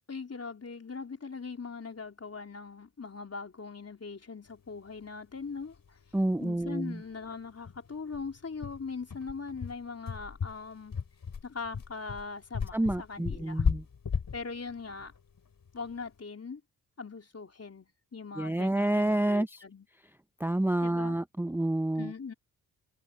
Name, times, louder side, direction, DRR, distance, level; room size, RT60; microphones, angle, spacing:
voice 1, 0.1-6.0 6.4-11.0 11.4-13.7 14.3-15.1 15.7-16.6 17.0-19.9 20.8-21.2 22.0-22.3, left 4 dB, 35° left, 3.8 m, -41 dB
sound 1, 5.7-5.8 6.1-6.2 6.6-6.7 7.1-7.2 7.6-16.1, left 6 dB, 55° left, 6.9 m, -35 dB
voice 2, 6.1-7.0 12.7-13.8 18.4-19.6 20.4-22.3, right 1 dB, 5° right, 0.8 m, -29 dB
hypercardioid pair, 40°, 42 cm